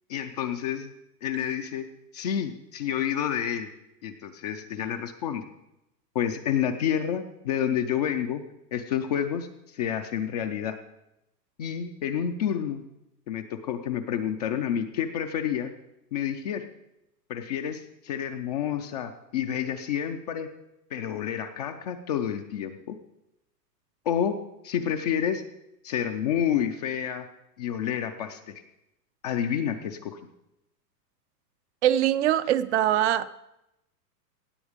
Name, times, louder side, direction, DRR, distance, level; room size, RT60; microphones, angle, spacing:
voice 1, 0.1-0.9 1.2-1.9 2.1-3.7 4.0-5.4 6.1-8.4 8.7-10.8 11.6-12.8 13.3-15.7 16.1-16.7 17.3-20.5 20.9-23.0 24.1-24.4 24.6-25.4 25.8-27.3 27.6-28.5 29.2-30.2, left 9 dB, 30° left, 7 dB, 0.4 m, -29 dB
voice 2, 31.8-33.3, right 12 dB, 45° right, 14 dB, 0.5 m, -22 dB
17.0 x 7.8 x 5.0 m, 0.88 s
hypercardioid pair, 130°, 50 cm